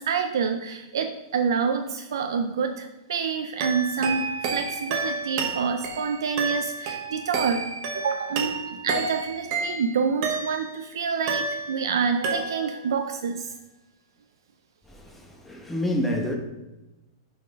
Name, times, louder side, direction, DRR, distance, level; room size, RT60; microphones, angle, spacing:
voice 1, 0.0-13.5, right 6 dB, 85° right, 0.5 m, -27 dB
sound 1, 3.6-10.8 11.3-12.0 12.2-12.9, right 4 dB, 40° right, 1.1 m, -30 dB
voice 2, 14.9-16.3, left 1 dB, 5° left, 1.0 m, -28 dB
6.2 x 4.2 x 5.2 m
supercardioid pair, 155°, 2 cm